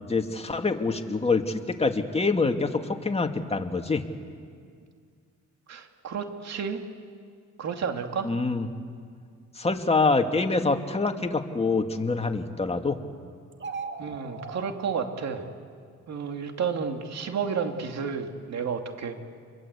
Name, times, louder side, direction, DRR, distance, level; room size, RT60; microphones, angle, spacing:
voice 1, 0.1-4.0 8.2-8.7 9.6-13.0, left 3 dB, 20° left, 5 dB, 2.1 m, -25 dB
voice 2, 5.7-6.8 7.6-8.3 14.0-15.5 16.1-19.2, right 6 dB, 60° right, 5 dB, 2.7 m, -31 dB
sound 1, 13.5-14.7, right 5 dB, 40° right, 2.1 m, -37 dB
28.5 x 22.0 x 8.3 m, 2.1 s
cardioid pair, 90°, 30 cm